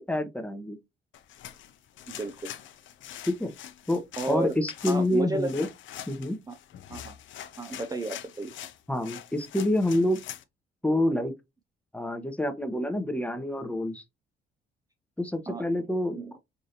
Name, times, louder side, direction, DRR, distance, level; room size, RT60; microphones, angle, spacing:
voice 1, 0.1-0.8 3.3-3.5 3.9-5.7 6.1-6.4 8.9-10.2 10.8-11.3 11.9-14.0 15.2-16.4, left 1 dB, 5° left, 0.9 m, -27 dB
sound 1, 1.1-10.4, left 11 dB, 75° left, 0.6 m, -44 dB
voice 2, 2.1-2.5 4.2-4.6 4.9-5.5 6.5-6.6 6.9-7.2 7.6-8.5 15.5-15.6 16.1-16.4, right 2 dB, 20° right, 0.5 m, -32 dB
5.1 x 2.7 x 2.8 m
cardioid pair, 90°, 20 cm